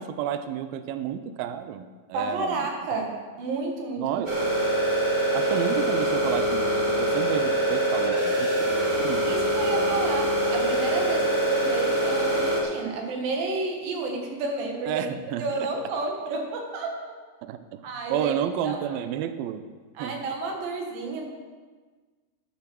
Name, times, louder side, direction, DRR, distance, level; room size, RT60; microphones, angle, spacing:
voice 1, 0.0-2.6 4.0-4.4 5.3-8.7 9.0-10.1 14.9-15.7 17.4-17.8 18.1-19.6 20.0-20.2, right 9 dB, 90° right, 10 dB, 2.1 m, -31 dB
voice 2, 2.1-4.2 9.2-15.1 15.4-17.0 17.8-18.3 18.6-19.0 19.9-21.3, right 3 dB, 65° right, 2 dB, 3.2 m, -31 dB
sound 1, 4.2-12.6, right 1 dB, 30° right, 0.8 m, -24 dB
10.5 x 9.8 x 6.2 m, 1.4 s
omnidirectional pair, 4.9 m